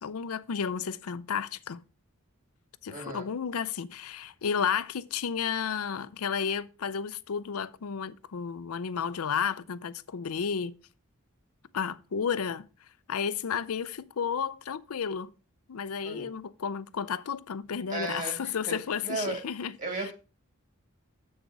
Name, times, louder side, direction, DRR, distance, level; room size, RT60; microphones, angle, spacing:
voice 1, 0.0-1.8 2.8-10.7 11.7-12.7 13.1-15.3 15.7-20.1, left 7 dB, 85° left, 0.5 m, -32 dB
voice 2, 2.9-3.3 16.0-16.3 17.9-18.7 19.0-19.4 19.8-20.1, right 3 dB, 35° right, 2.4 m, -35 dB
7.9 x 6.6 x 4.6 m
head